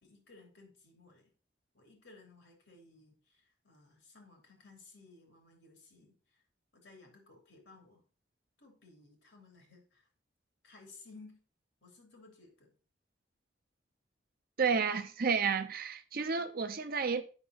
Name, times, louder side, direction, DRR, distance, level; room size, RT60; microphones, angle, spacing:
voice 1, 0.0-1.3 1.7-6.4 6.7-8.0 8.6-10.1 10.6-11.4 11.8-12.7, left 3 dB, 70° left, 3.0 m, -58 dB
voice 2, 14.6-17.2, right 5 dB, 50° right, 0.7 m, -31 dB
8.2 x 6.0 x 4.1 m
head